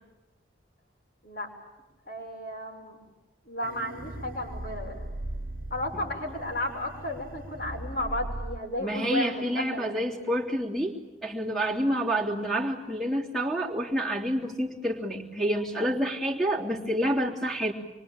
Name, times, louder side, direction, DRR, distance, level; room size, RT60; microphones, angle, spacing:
voice 1, 2.1-3.0 3.5-5.0 5.7-9.9, left 1 dB, 55° left, 0 dB, 6.1 m, -33 dB
sound 1, 3.6-8.6, right 1 dB, 50° right, 1.2 m, -39 dB
voice 2, 8.8-10.9 11.2-17.7, equal, ahead, 0 dB, 3.2 m, -28 dB
26.0 x 24.0 x 8.9 m, 1.1 s
head